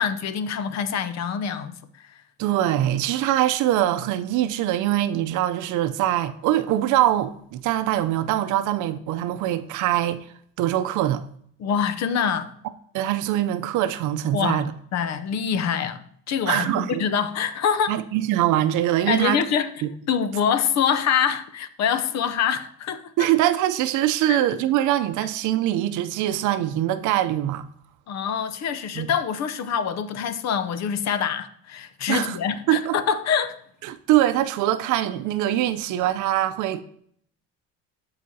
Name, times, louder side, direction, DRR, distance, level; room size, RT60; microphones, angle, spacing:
voice 1, 0.0-2.1 11.6-12.5 14.3-14.6 14.9-18.0 19.1-23.1 24.3-24.4 28.1-33.6, left 7 dB, 55° left, 0.8 m, -25 dB
voice 2, 2.4-10.2 10.6-11.2 12.9-14.7 16.5-17.0 17.9-19.4 19.8-19.9 23.2-27.7 28.9-29.1 32.1-32.4 32.7-33.0 33.8-36.8, right 13 dB, 70° right, 0.6 m, -23 dB
12.5 x 5.0 x 2.8 m
supercardioid pair, 90°, 32 cm